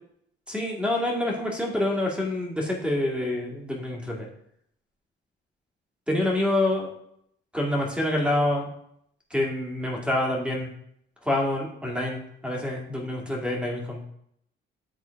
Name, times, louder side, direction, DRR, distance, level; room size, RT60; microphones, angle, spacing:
voice 1, 0.5-4.3 6.1-6.9 7.5-8.7 9.3-10.7 11.2-14.0, left 1 dB, 5° right, -2 dB, 2.1 m, -27 dB
9.3 x 3.7 x 3.5 m, 0.70 s
cardioid pair, 90°, 20 cm